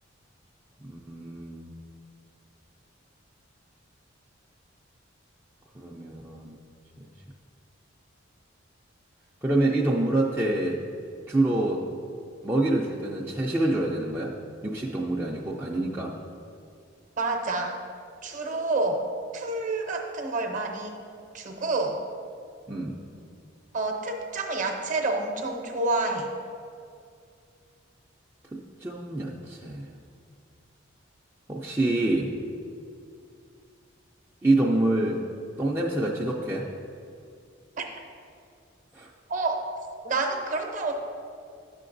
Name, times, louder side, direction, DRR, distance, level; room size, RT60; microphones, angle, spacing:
voice 1, 0.8-1.7 5.8-6.6 7.0-7.1 9.4-10.8 11.3-11.8 12.4-14.3 14.6-16.1 22.7-22.9 28.5-29.9 31.5-32.3 34.4-35.2 35.6-36.7 38.9-39.1, right 2 dB, 10° right, -4 dB, 0.3 m, -26 dB
voice 2, 17.2-17.8 18.2-19.0 19.3-21.0 21.3-22.0 23.7-26.3 37.8-37.9 39.3-39.7 40.0-40.9, right 3 dB, 40° right, 3 dB, 0.7 m, -28 dB
9.8 x 6.6 x 2.6 m, 2.4 s
head